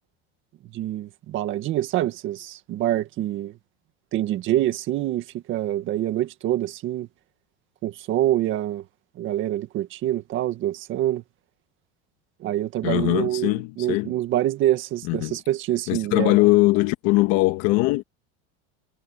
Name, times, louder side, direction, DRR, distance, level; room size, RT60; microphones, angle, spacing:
voice 1, 0.7-3.6 4.1-7.1 7.8-8.8 9.2-11.2 12.4-16.4, right 13 dB, 40° right, 1.9 m, -26 dB
voice 2, 12.8-14.1 15.0-15.4 15.9-18.0, left 21 dB, 60° left, 1.7 m, -21 dB
cardioid pair, 155°, 29 cm